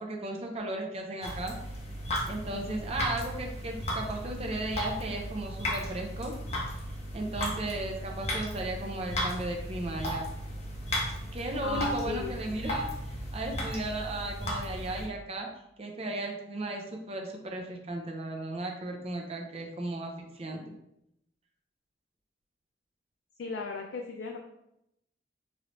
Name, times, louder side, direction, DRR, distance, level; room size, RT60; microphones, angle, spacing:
voice 1, 0.0-1.5 2.3-6.3 7.1-10.3 11.3-12.9 13.3-15.5 15.8-20.8, right 2 dB, 35° right, 2 dB, 0.5 m, -35 dB
sound 1, 1.2-15.1, equal, 40° left, 0.7 m, -35 dB
voice 2, 11.6-12.4 23.4-24.4, left 4 dB, 80° left, 2 dB, 0.4 m, -36 dB
3.1 x 2.6 x 3.0 m, 0.81 s
head